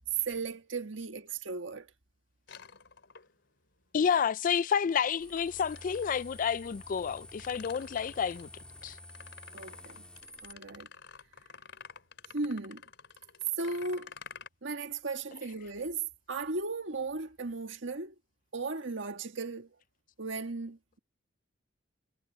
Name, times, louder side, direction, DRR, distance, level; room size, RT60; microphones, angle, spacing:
voice 1, 0.2-1.9 9.5-10.0 10.4-10.9 12.3-12.8 13.6-14.1 14.6-18.1 18.5-19.7 20.2-21.0, right 3 dB, 70° right, 1.7 m, -36 dB
sound 1, 2.5-3.6 5.4-6.2 7.0-14.5, left 6 dB, 65° left, 5.0 m, -51 dB
voice 2, 3.9-8.5 8.8-9.0, left 7 dB, 45° left, 0.3 m, -29 dB
sound 2, 5.2-10.5, left 1 dB, 5° left, 1.6 m, -50 dB
head